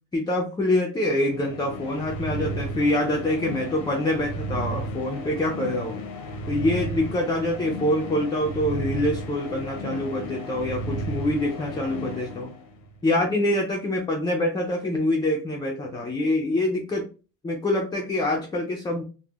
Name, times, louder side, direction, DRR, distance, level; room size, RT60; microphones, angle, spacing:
voice 1, 0.1-6.0 6.5-12.5 13.0-17.0 17.4-19.0, left 1 dB, 15° left, 0 dB, 0.3 m, -25 dB
sound 1, 1.2-13.0, right 1 dB, 80° left, 0.7 m, -34 dB
3.4 x 2.0 x 2.2 m, 0.34 s
cardioid pair, 125°, 33 cm